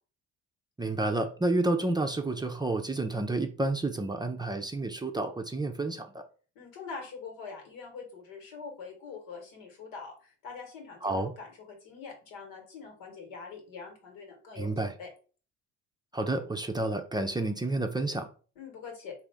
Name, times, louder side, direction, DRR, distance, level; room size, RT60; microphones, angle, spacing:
voice 1, 0.8-6.2 11.0-11.3 14.6-14.9 16.1-18.3, right 2 dB, 15° right, 0.5 m, -30 dB
voice 2, 6.5-15.1 18.5-19.1, left 5 dB, 80° left, 1.6 m, -44 dB
3.8 x 2.7 x 3.5 m
supercardioid pair, 75°, 33 cm